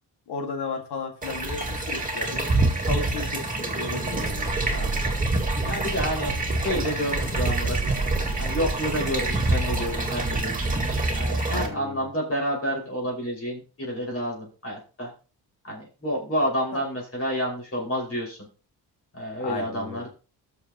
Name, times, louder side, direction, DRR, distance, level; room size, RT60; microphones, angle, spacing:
voice 1, 0.3-4.9 11.5-12.1 16.7-16.8 19.4-20.1, left 4 dB, 85° left, 4 dB, 2.0 m, -35 dB
sound 1, 1.2-11.7, right 2 dB, 20° right, 2.1 m, -26 dB
sound 2, 4.1-10.4, right 2 dB, 10° left, 4.9 m, -33 dB
voice 2, 4.7-5.2 5.7-6.4 6.6-7.8 8.4-10.7 11.1-15.1 15.6-18.4 19.1-20.1, equal, 35° left, -2 dB, 5.4 m, -29 dB
19.0 x 6.9 x 3.0 m, 0.34 s
cardioid pair, 105°, 38 cm